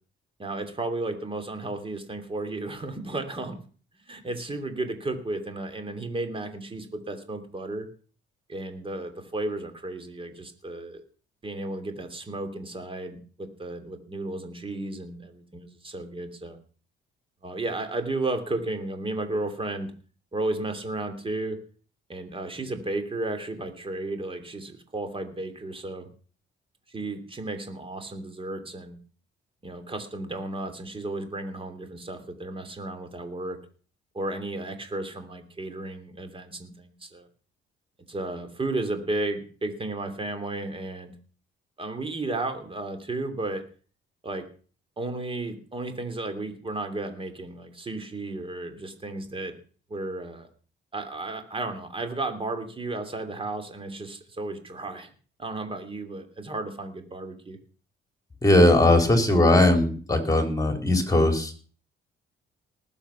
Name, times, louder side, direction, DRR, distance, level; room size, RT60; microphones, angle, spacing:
voice 1, 0.4-3.6 4.1-7.9 8.5-11.0 11.4-16.6 17.4-19.9 20.3-21.6 22.1-26.1 26.9-29.0 29.6-33.6 34.1-37.3 38.1-41.1 41.8-43.6 44.2-44.5 45.0-49.6 49.9-50.5 50.9-55.1 55.4-57.6, right 2 dB, 25° right, 7 dB, 3.0 m, -33 dB
voice 2, 58.4-61.5, left 1 dB, 15° left, 5 dB, 3.8 m, -19 dB
19.0 x 7.5 x 5.7 m, 0.40 s
cardioid pair, 90°, 20 cm